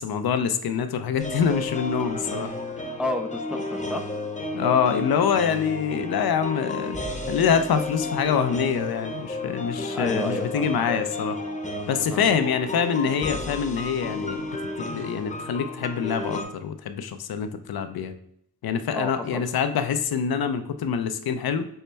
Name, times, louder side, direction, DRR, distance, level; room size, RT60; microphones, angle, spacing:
voice 1, 0.0-2.5 4.5-11.4 11.9-14.4 14.8-18.1 18.6-21.7, left 7 dB, 65° left, 9 dB, 0.5 m, -25 dB
sound 1, 1.2-16.4, left 2 dB, 20° left, 0.8 m, -32 dB
voice 2, 2.8-4.1 9.9-10.8 12.1-12.3 18.9-19.5, left 1 dB, 5° right, 6 dB, 0.3 m, -31 dB
5.4 x 2.1 x 3.2 m, 0.70 s
cardioid pair, 45°, 41 cm